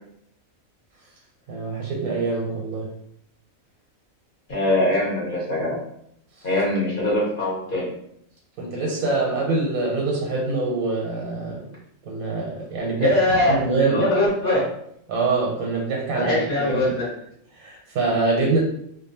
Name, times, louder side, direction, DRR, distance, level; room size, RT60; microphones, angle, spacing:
voice 1, 1.5-2.9 6.4-6.5 8.6-11.7 12.1-14.1 15.1-17.0 17.5-18.6, right 3 dB, 90° right, -2 dB, 1.1 m, -25 dB
voice 2, 4.5-5.8 6.4-7.9 13.0-14.7 16.1-17.1, left 1 dB, 40° left, -7 dB, 1.1 m, -22 dB
2.5 x 2.2 x 2.7 m, 0.72 s
omnidirectional pair, 1.5 m